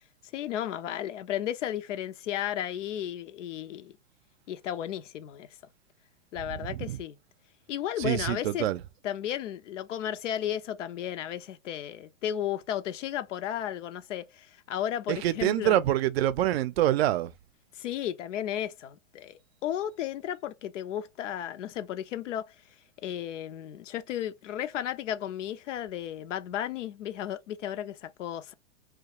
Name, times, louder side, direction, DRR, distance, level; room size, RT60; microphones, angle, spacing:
voice 1, 0.3-3.9 4.5-5.5 6.3-7.2 7.7-8.7 9.0-15.8 17.7-22.6 23.0-28.5, left 11 dB, 70° left, 0.7 m, -34 dB
voice 2, 6.5-7.0 8.0-8.8 15.1-17.3, right 13 dB, 55° right, 0.5 m, -26 dB
2.3 x 2.3 x 2.8 m
hypercardioid pair, 125°, 37 cm